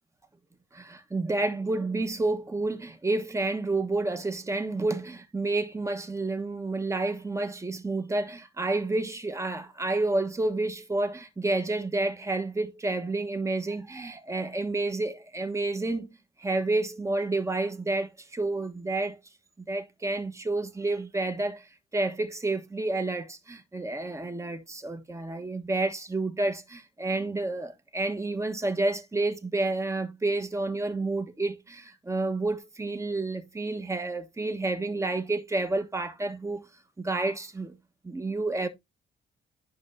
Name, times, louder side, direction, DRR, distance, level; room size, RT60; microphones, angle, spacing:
voice 1, 0.7-16.1 16.4-19.2 19.7-21.7 21.9-36.6 37.0-37.8 38.0-38.7, right 2 dB, 15° right, 1.2 m, -30 dB
11.5 x 5.4 x 2.6 m
cardioid pair, 90°, 20 cm